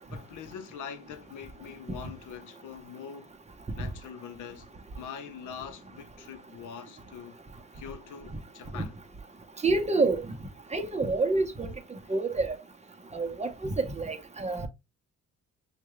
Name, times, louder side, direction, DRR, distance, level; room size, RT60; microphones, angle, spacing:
voice 1, 0.1-3.3 3.8-7.4 7.7-8.9 12.0-12.1, left 8 dB, 80° left, 0.9 m, -43 dB
voice 2, 9.6-10.2 10.7-11.7 12.1-12.6 13.1-14.7, right 3 dB, 20° right, 1.0 m, -27 dB
6.0 x 2.4 x 3.1 m
cardioid pair, 90°, 30 cm